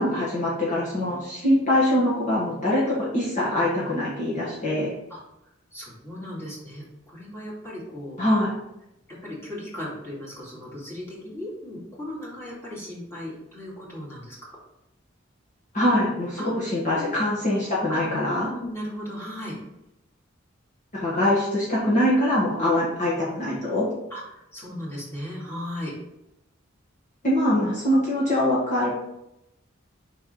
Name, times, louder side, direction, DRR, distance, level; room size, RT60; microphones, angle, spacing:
voice 1, 0.0-4.9 8.2-8.5 15.7-18.5 20.9-23.9 27.2-28.9, left 1 dB, 40° left, -7 dB, 1.7 m, -23 dB
voice 2, 5.7-8.2 9.1-14.5 16.4-16.5 16.9-17.3 17.9-18.0 18.4-19.5 22.6-22.8 24.1-25.9, left 1 dB, 15° left, -7 dB, 2.5 m, -36 dB
5.4 x 4.6 x 4.6 m, 0.87 s
head